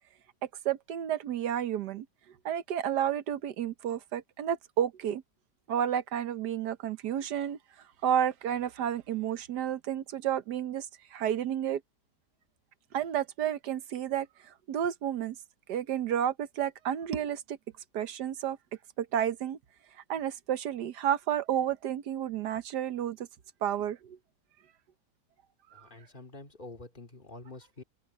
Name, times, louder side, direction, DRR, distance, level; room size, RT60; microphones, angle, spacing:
voice 1, 0.6-2.1 2.4-5.2 5.7-7.6 8.0-10.9 11.1-11.8 12.9-15.4 15.7-17.6 17.9-18.6 19.0-19.6 20.1-23.3 23.6-24.2, right 10 dB, 90° right, 1.5 m, -31 dB
voice 2, 25.7-27.8, left 2 dB, 30° left, 2.6 m, -47 dB
open air
omnidirectional pair, 1.7 m